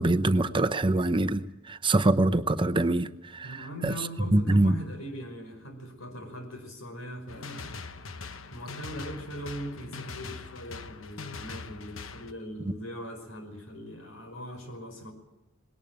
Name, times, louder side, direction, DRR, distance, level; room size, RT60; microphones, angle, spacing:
voice 1, 0.0-3.9 4.3-4.8 12.6-12.7, right 2 dB, 25° right, 0.8 m, -24 dB
voice 2, 3.4-8.1 8.5-15.1, equal, 85° left, 5.2 m, -41 dB
sound 1, 7.3-12.3, left 4 dB, 70° left, 1.1 m, -42 dB
20.0 x 18.0 x 8.7 m
head